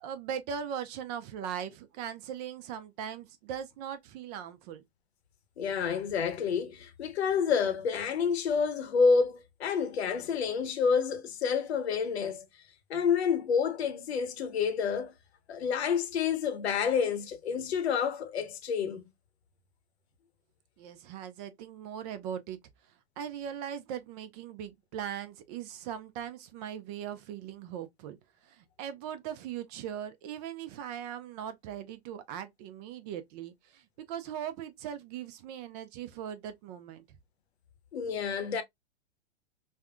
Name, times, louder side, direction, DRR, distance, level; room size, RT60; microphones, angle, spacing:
voice 1, 0.0-4.8 20.8-22.6 23.2-37.0, right 9 dB, 40° right, 0.5 m, -39 dB
voice 2, 5.6-12.4 12.9-15.1 15.5-19.0 37.9-38.6, left 6 dB, 70° left, 0.8 m, -29 dB
3.5 x 2.2 x 2.2 m
hypercardioid pair, 115°, 33 cm